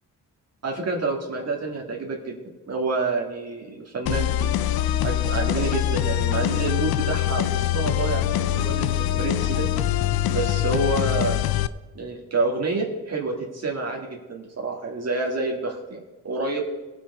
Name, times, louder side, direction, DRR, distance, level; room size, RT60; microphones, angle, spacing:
voice 1, 0.6-2.4 2.7-4.5 5.0-9.7 10.3-11.4 12.0-16.6, right 3 dB, 45° right, -1 dB, 2.1 m, -28 dB
sound 1, 4.1-11.7, left 12 dB, 90° left, 0.6 m, -24 dB
17.5 x 6.1 x 5.4 m, 1.2 s
cardioid pair, 95°, 35 cm